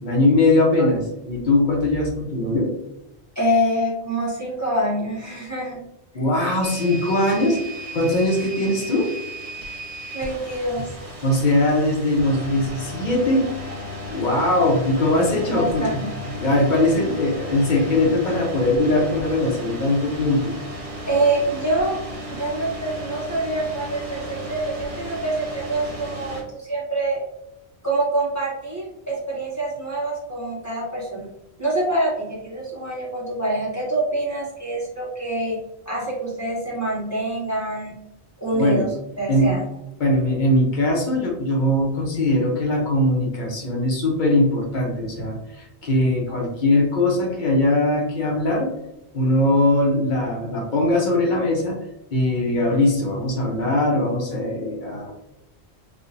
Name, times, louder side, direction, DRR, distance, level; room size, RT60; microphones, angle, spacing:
voice 1, 0.0-2.7 6.1-7.6 7.9-9.1 11.2-13.7 14.1-16.0 16.3-20.5 38.5-38.9 39.3-39.5 40.0-48.7 49.1-51.8 52.1-55.1, left 1 dB, 50° left, 0 dB, 0.9 m, -21 dB
voice 2, 3.3-5.9 10.1-10.9 15.5-16.1 21.1-27.2 27.8-31.3 31.6-35.6 35.9-38.0 38.4-38.9 39.2-39.6, right 1 dB, 15° left, -7 dB, 1.0 m, -25 dB
sound 1, 6.6-26.4, equal, 80° right, 1.4 m, -35 dB
3.5 x 2.7 x 2.5 m, 0.87 s
omnidirectional pair, 1.1 m